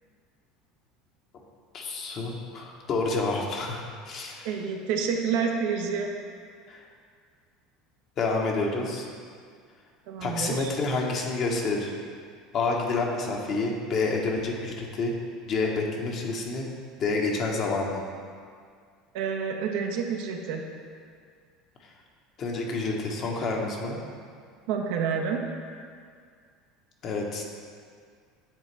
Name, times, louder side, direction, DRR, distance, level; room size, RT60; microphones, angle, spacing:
voice 1, 1.7-4.5 6.7-6.8 8.2-9.1 10.2-11.9 12.5-15.1 15.5-16.7 17.0-18.0 22.4-24.0 27.0-27.4, left 3 dB, 50° left, 0 dB, 1.2 m, -28 dB
voice 2, 4.4-6.1 10.1-10.7 19.1-20.7 24.7-25.4, right 6 dB, 70° right, 2 dB, 0.7 m, -28 dB
9.4 x 4.1 x 3.4 m, 2.1 s
hypercardioid pair, 75°, 0 cm